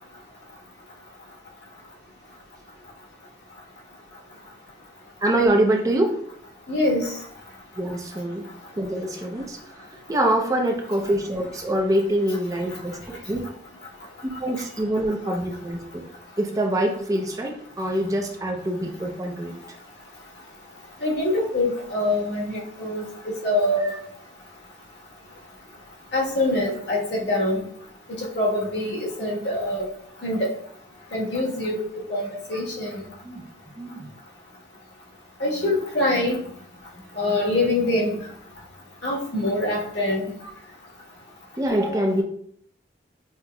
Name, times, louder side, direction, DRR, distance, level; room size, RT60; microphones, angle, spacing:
voice 1, 5.2-6.2 7.8-8.5 8.8-13.4 14.4-16.0 16.4-19.8 23.8-24.0 33.2-33.4 33.8-34.1 41.6-42.2, right 1 dB, 20° right, 1 dB, 0.4 m, -25 dB
voice 2, 6.7-7.2 21.0-23.9 26.1-27.6 28.2-29.9 30.2-30.5 31.1-33.0 35.4-36.4 37.1-38.2 39.0-40.3, left 1 dB, 70° left, -3 dB, 1.3 m, -24 dB
5.7 x 2.8 x 2.2 m, 0.65 s
head